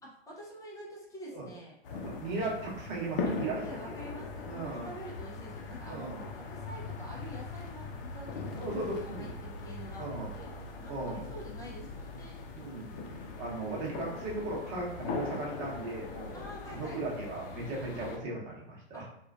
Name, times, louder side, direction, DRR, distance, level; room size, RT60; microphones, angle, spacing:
voice 1, 0.0-1.7 3.2-10.5 10.8-12.4 16.3-17.0 18.9-19.1, equal, 10° left, -4 dB, 0.6 m, -47 dB
sound 1, 1.8-18.2, left 4 dB, 55° left, 0.7 m, -40 dB
voice 2, 2.0-3.9 4.4-4.9 5.9-6.2 8.6-9.3 10.0-10.3 10.9-11.3 12.5-12.9 13.4-16.5 16.7-19.1, right 2 dB, 40° right, -3 dB, 1.0 m, -37 dB
3.0 x 2.4 x 2.4 m, 0.82 s
hypercardioid pair, 115°, 32 cm